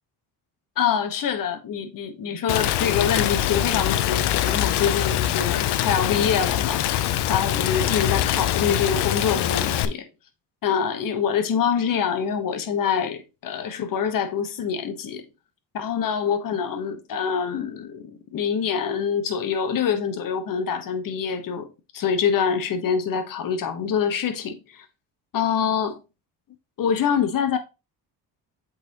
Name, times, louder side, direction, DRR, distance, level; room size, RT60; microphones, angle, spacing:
voice 1, 0.8-7.0 7.3-10.1 10.6-15.2 15.7-21.7 21.9-24.9 25.3-26.0 26.8-27.6, left 7 dB, 50° left, 1.2 m, -25 dB
Rain, 2.5-9.9, left 13 dB, 75° left, 0.7 m, -23 dB
7.9 x 4.1 x 2.9 m
cardioid pair, 95°, 41 cm